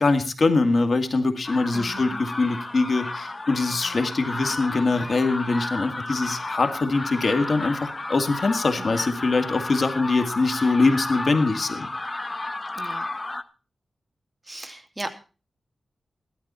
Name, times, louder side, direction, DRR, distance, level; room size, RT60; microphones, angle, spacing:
voice 1, 0.0-11.9, left 3 dB, 55° left, 8 dB, 2.1 m, -23 dB
sound 1, 1.4-13.4, left 2 dB, 30° left, 1.2 m, -33 dB
voice 2, 1.7-2.2 8.8-8.9 12.7-13.1 14.4-15.1, right 1 dB, 15° right, 7 dB, 2.3 m, -36 dB
16.0 x 12.0 x 4.3 m, 0.34 s
wide cardioid pair, 75°, 0 cm